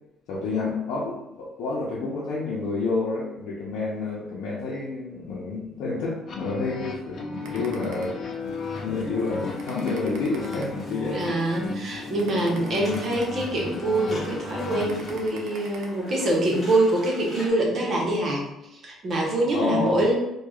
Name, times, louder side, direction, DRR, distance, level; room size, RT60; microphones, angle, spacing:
voice 1, 0.3-8.2 8.7-11.2 19.5-20.0, left 3 dB, 80° left, -6 dB, 0.6 m, -29 dB
sound 1, 6.3-15.3, left 4 dB, 45° left, 0.5 m, -35 dB
sound 2, 7.4-8.6 9.1-9.2 9.6-11.2 11.7-11.8 12.2-13.8 14.3-14.4 14.8-15.8, right 4 dB, 80° right, 0.6 m, -42 dB
sound 3, 8.4-17.5, left 1 dB, 15° left, 1.2 m, -46 dB
voice 2, 11.1-18.5 18.7-20.1, right 1 dB, 40° right, -2 dB, 0.9 m, -25 dB
4.7 x 2.3 x 2.3 m, 0.92 s
cardioid pair, 145°, 0 cm